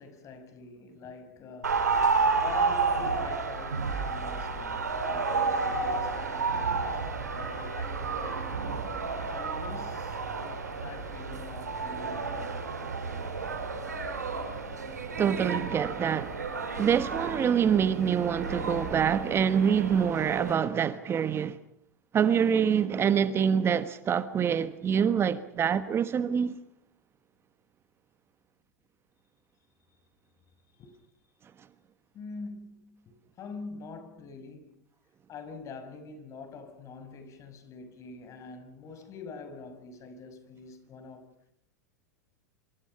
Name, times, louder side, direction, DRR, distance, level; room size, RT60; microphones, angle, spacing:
voice 1, 0.0-1.8 2.4-8.6 9.3-13.5 29.9-30.0 30.8-31.0 32.1-34.8 35.3-41.3, left 4 dB, 35° left, 6.0 m, -45 dB
sound 1, 1.6-20.5, right 4 dB, 85° right, 5.3 m, -31 dB
voice 2, 15.2-16.4 16.8-21.6 22.1-26.6, right 7 dB, 30° right, 1.3 m, -25 dB
27.0 x 26.5 x 5.7 m
hypercardioid pair, 90°, 9 cm